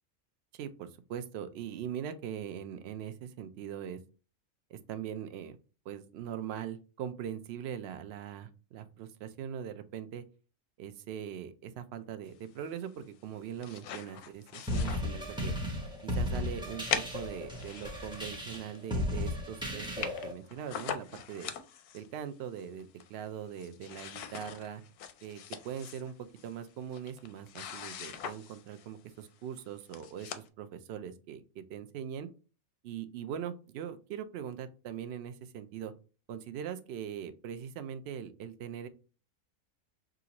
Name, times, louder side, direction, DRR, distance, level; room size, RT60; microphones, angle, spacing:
voice 1, 0.5-4.0 4.7-5.6 5.9-10.2 10.8-15.5 16.0-21.5 21.9-24.8 25.2-32.3 32.8-35.9 36.3-38.9, right 9 dB, 70° right, 10 dB, 0.6 m, -41 dB
sound 1, 13.3-15.6 16.0-16.1 16.9-18.9 19.3-19.4 19.6-19.7 19.8-22.1 22.6-23.3 23.5-28.9 29.6-29.7 29.9-30.5, left 9 dB, 90° left, 1.1 m, -41 dB
sound 2, 14.7-20.3, left 1 dB, 5° right, 0.4 m, -35 dB
5.8 x 2.5 x 2.9 m, 0.35 s
omnidirectional pair, 1.6 m